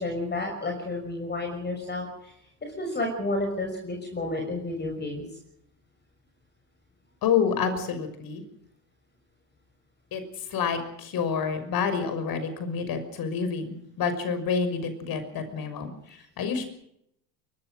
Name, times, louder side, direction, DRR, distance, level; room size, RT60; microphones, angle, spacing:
voice 1, 0.0-2.3 2.6-5.2, left 2 dB, 20° left, 2 dB, 6.2 m, -31 dB
voice 2, 7.2-8.4 10.1-16.7, left 6 dB, 45° left, 10 dB, 6.1 m, -28 dB
22.5 x 22.5 x 6.5 m, 0.75 s
hypercardioid pair, 90°, 47 cm